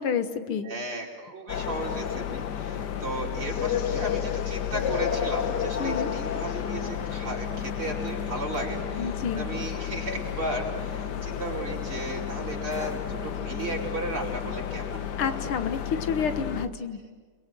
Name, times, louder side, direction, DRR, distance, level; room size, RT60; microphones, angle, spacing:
voice 1, 0.0-0.7 5.8-6.1 8.9-9.5 15.2-17.0, left 6 dB, 80° left, 9 dB, 2.3 m, -29 dB
voice 2, 0.6-15.4, right 2 dB, 80° right, -2 dB, 5.8 m, -35 dB
sound 1, 1.5-16.7, left 9 dB, 60° left, 1.5 m, -31 dB
29.5 x 22.0 x 7.7 m, 1.5 s
omnidirectional pair, 2.3 m